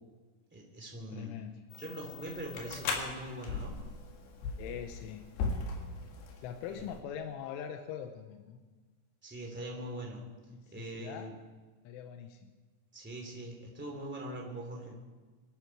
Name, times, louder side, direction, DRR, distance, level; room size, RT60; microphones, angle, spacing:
voice 1, 0.5-1.3 1.8-3.8 6.7-6.9 9.2-10.2 10.7-11.3 12.9-15.0, right 1 dB, 5° right, 0 dB, 1.8 m, -42 dB
voice 2, 1.1-1.6 4.6-5.3 6.4-8.6 10.8-11.3 11.9-12.5, left 8 dB, 85° left, 5 dB, 3.4 m, -42 dB
sound 1, 1.7-7.0, left 4 dB, 65° left, 3.7 m, -39 dB
24.5 x 12.5 x 4.7 m, 1.3 s
omnidirectional pair, 5.4 m